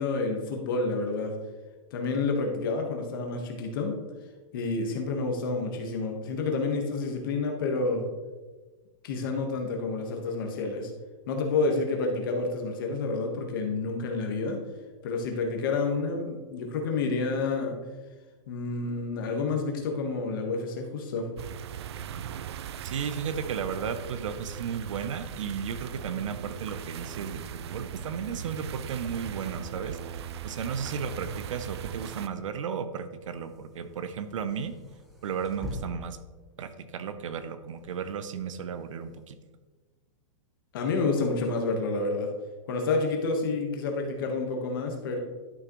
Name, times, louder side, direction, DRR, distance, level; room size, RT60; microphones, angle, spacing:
voice 1, 0.0-1.3 1.9-4.0 4.5-8.0 9.0-10.9 11.3-14.6 15.0-17.8 18.5-21.3 40.7-42.3 42.7-45.2, left 3 dB, 40° left, 3 dB, 1.4 m, -29 dB
sound 1, 21.4-32.3, right 8 dB, 55° right, 0.4 m, -39 dB
voice 2, 22.8-30.0 30.4-34.8 35.2-36.2 36.6-39.3, right 7 dB, 75° right, 10 dB, 0.9 m, -34 dB
sound 2, 25.4-39.2, left 2 dB, ahead, 0.8 m, -49 dB
11.5 x 6.4 x 3.1 m, 1.3 s
supercardioid pair, 180°, 16 cm